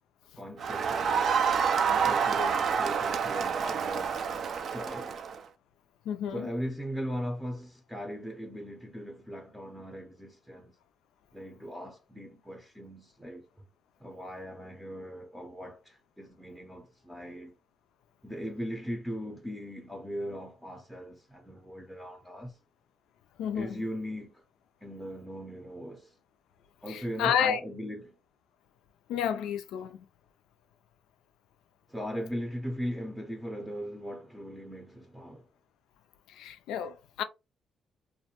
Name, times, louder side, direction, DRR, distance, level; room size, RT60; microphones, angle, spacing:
voice 1, 0.4-1.4 1.8-4.2 4.7-5.2 6.3-10.7 11.3-13.6 14.0-17.5 18.2-22.6 23.5-24.4 24.8-26.1 26.8-28.1 31.9-35.5, equal, 5° right, 0.6 m, -39 dB
Crowd, 0.6-5.4, right 6 dB, 60° right, 0.4 m, -28 dB
voice 2, 6.1-6.5 23.4-23.8 26.9-27.6 29.1-30.0 36.3-37.2, left 8 dB, 90° left, 0.3 m, -31 dB
2.4 x 2.1 x 2.9 m
cardioid pair, 90°, 0 cm